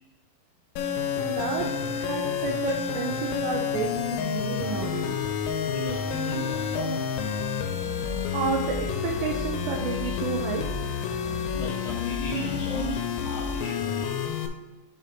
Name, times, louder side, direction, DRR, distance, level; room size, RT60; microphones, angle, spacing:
sound 1, 0.8-14.5, left 7 dB, 90° left, 3.3 m, -29 dB
voice 1, 1.2-1.7 1.9-5.1 8.3-10.7, right 5 dB, 85° right, 1 dB, 2.5 m, -31 dB
voice 2, 5.7-7.0 11.5-14.1, equal, 75° left, -3 dB, 2.5 m, -36 dB
7.7 x 3.3 x 5.5 m, 1.1 s
omnidirectional pair, 5.9 m